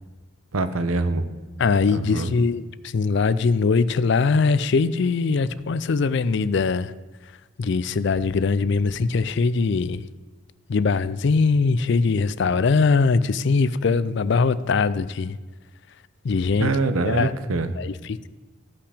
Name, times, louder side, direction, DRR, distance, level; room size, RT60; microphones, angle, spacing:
voice 1, 0.5-1.2 1.9-2.3 16.6-17.7, right 3 dB, 85° right, 10 dB, 0.8 m, -24 dB
voice 2, 1.6-6.9 7.6-10.0 10.7-15.4 16.2-16.7 17.0-17.3 17.8-18.3, left 4 dB, 55° left, 16 dB, 0.4 m, -21 dB
15.0 x 5.7 x 5.0 m, 1.3 s
head